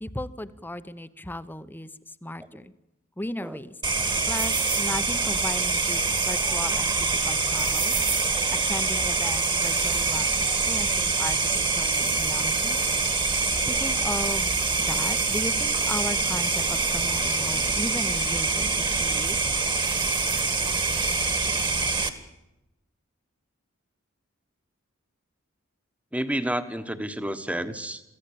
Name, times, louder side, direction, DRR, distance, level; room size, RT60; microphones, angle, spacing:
voice 1, 0.0-1.9 2.2-2.7 3.2-3.7 4.3-7.9 8.5-12.8 13.7-18.7 19.0-19.4, left 1 dB, 10° left, 13 dB, 0.9 m, -36 dB
sound 1, 3.8-22.1, right 4 dB, 20° right, 1.8 m, -25 dB
voice 2, 26.1-28.0, right 1 dB, 5° right, 10 dB, 1.3 m, -30 dB
23.5 x 15.5 x 8.5 m, 0.94 s
head